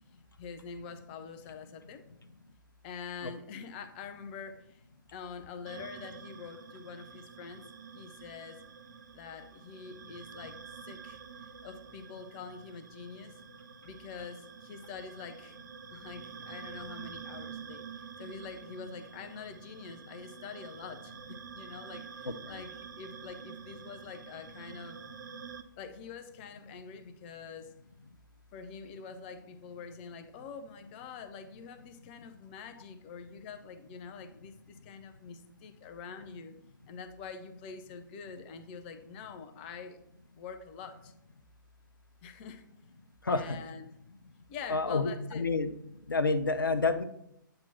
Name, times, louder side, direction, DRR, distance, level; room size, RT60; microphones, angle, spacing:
voice 1, 0.4-2.0 2.8-4.8 5.1-8.6 9.1-10.6 10.8-11.2 11.6-13.4 13.8-15.6 15.9-25.0 25.8-27.7 28.5-36.5 36.9-40.0 40.4-41.1 42.2-42.6 43.3-43.9 44.5-45.5, left 6 dB, 30° left, 9 dB, 0.7 m, -45 dB
sound 1, 5.7-25.6, right 6 dB, 60° right, 0.6 m, -48 dB
voice 2, 22.2-22.6 43.2-43.6 44.7-45.7 46.1-47.0, left 3 dB, 80° left, 12 dB, 0.6 m, -29 dB
8.8 x 3.0 x 5.6 m, 0.78 s
figure-of-eight pair, 120°, 11 cm